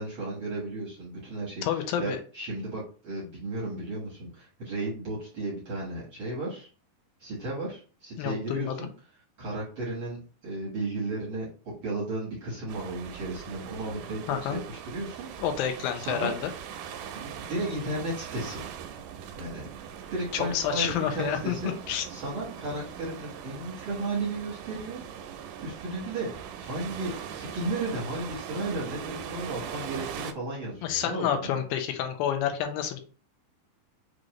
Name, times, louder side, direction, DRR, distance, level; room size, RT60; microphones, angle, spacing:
voice 1, 0.0-6.7 7.2-8.9 9.4-11.5 11.8-15.3 16.0-16.3 17.1-18.6 19.3-19.7 20.1-25.0 25.6-31.6, right 2 dB, 65° right, -5 dB, 1.2 m, -34 dB
voice 2, 1.6-2.2 8.2-8.7 14.3-14.6 15.4-16.5 20.3-21.6 21.9-22.1 30.8-33.0, left 9 dB, 80° left, 6 dB, 2.4 m, -29 dB
sound 1, 12.7-30.3, right 8 dB, 90° right, 2.5 m, -41 dB
6.3 x 2.5 x 2.9 m, 0.38 s
omnidirectional pair, 4.3 m